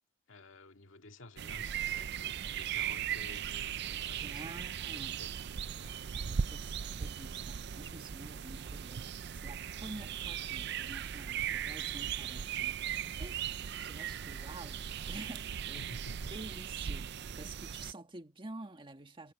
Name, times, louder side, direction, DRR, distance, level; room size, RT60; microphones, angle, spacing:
voice 1, 0.3-5.3 5.8-6.0 15.7-16.3, left 2 dB, 80° left, 2.0 m, -53 dB
sound 1, 1.4-17.9, right 8 dB, 60° right, 0.5 m, -38 dB
voice 2, 4.2-5.2 5.8-12.8 13.2-15.9 16.3-19.3, right 2 dB, 25° right, 1.9 m, -49 dB
head